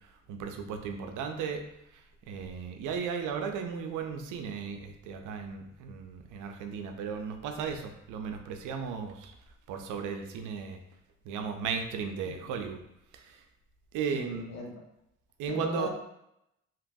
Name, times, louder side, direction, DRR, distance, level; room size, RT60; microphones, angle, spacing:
voice 1, 0.3-1.6 2.3-9.3 9.7-10.8 11.2-12.8 13.1-13.4 13.9-14.5 15.4-15.9, right 6 dB, 85° right, 5 dB, 0.5 m, -35 dB
voice 2, 14.1-14.7 15.5-15.9, left 2 dB, 60° left, -1 dB, 0.9 m, -37 dB
2.9 x 2.9 x 2.6 m, 0.81 s
cardioid pair, 90°, 30 cm